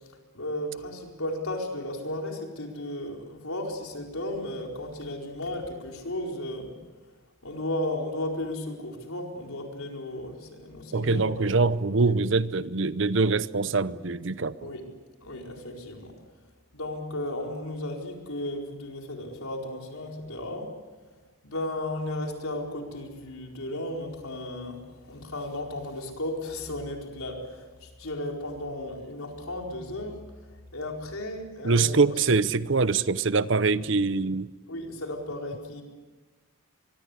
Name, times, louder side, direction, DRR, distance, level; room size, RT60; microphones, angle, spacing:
voice 1, 0.3-6.8 7.4-11.5 12.0-12.1 14.6-14.9 15.2-16.2 16.7-20.7 21.4-30.2 30.7-32.2 33.8-33.9 34.7-35.8, left 1 dB, 85° left, 4.5 m, -34 dB
voice 2, 10.9-14.7 31.6-34.5, right 4 dB, 60° right, 0.7 m, -24 dB
23.5 x 23.5 x 8.2 m
head